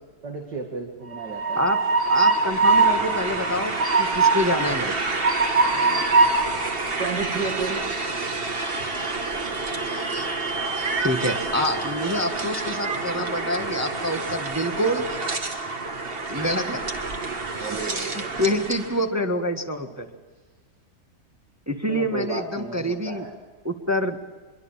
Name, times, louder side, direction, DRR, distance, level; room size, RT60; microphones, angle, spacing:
voice 1, 0.2-1.7 5.6-6.2 7.0-7.8 17.5-18.4 21.9-23.3, right 4 dB, 80° right, 2 dB, 2.8 m, -33 dB
Train, 1.1-18.9, right 3 dB, 35° right, 1.8 m, -25 dB
voice 2, 2.0-4.9 11.0-15.0 16.3-16.8 17.7-17.8 18.4-20.1 21.7-23.3 23.6-24.2, left 1 dB, 10° right, 5 dB, 1.3 m, -26 dB
25.0 x 23.0 x 7.2 m, 1.4 s
omnidirectional pair, 1.8 m